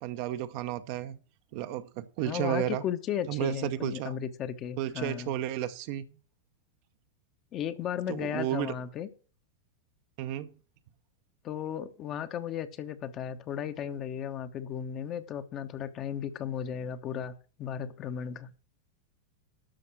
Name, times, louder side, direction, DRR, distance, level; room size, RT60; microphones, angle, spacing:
voice 1, 0.0-1.2 1.5-2.8 3.3-4.2 4.8-6.1 8.1-8.8 10.2-10.6, right 12 dB, 45° right, 0.8 m, -32 dB
voice 2, 2.2-5.3 7.5-9.1 11.4-18.5, left 9 dB, 35° left, 1.0 m, -35 dB
12.5 x 5.4 x 6.3 m
figure-of-eight pair, 90°, 0 cm